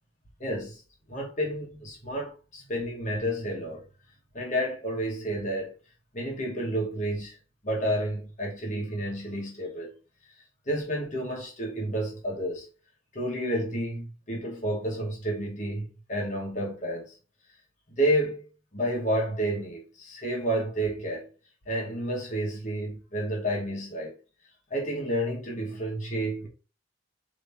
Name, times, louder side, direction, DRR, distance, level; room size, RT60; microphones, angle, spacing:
voice 1, 0.4-0.8 1.1-3.8 4.3-5.7 6.1-7.4 7.6-9.9 10.7-12.7 13.1-17.1 17.9-18.4 18.7-21.3 21.7-24.1 24.7-26.5, right 1 dB, 40° left, 1.2 m, -30 dB
3.4 x 3.0 x 4.0 m
head